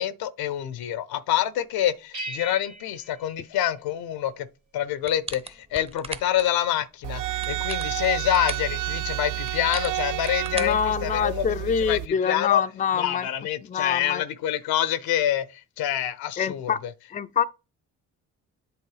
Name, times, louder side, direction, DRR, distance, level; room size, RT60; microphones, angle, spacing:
voice 1, 0.0-4.5 4.7-12.6 12.9-16.9, left 11 dB, 75° left, 0.8 m, -27 dB
sound 1, 2.1-4.4, right 2 dB, 85° right, 1.7 m, -40 dB
sound 2, 5.0-6.5 7.3-8.7 9.5-11.5, right 2 dB, 15° right, 0.8 m, -38 dB
sound 3, 7.0-12.1, right 15 dB, 55° right, 0.5 m, -30 dB
voice 2, 10.5-13.3 13.7-14.2 16.4-16.8 17.1-17.4, left 8 dB, 20° left, 0.4 m, -25 dB
7.9 x 3.0 x 4.9 m
supercardioid pair, 50°, 37 cm